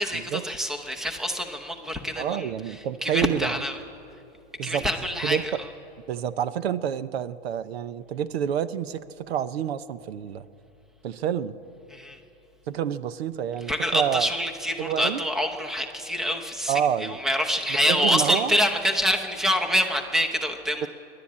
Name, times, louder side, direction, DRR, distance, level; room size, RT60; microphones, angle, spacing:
voice 1, 0.0-2.5 3.0-3.8 4.6-5.4 11.9-12.2 13.7-20.9, equal, ahead, 5 dB, 0.8 m, -26 dB
voice 2, 2.2-3.6 4.6-4.9 5.2-5.4 6.1-10.4 11.0-11.6 12.7-14.3 14.8-15.2 16.7-17.2 17.9-18.6 20.8-20.9, right 9 dB, 70° right, 14 dB, 0.9 m, -28 dB
26.5 x 11.5 x 8.7 m, 2.8 s
supercardioid pair, 160°, 32 cm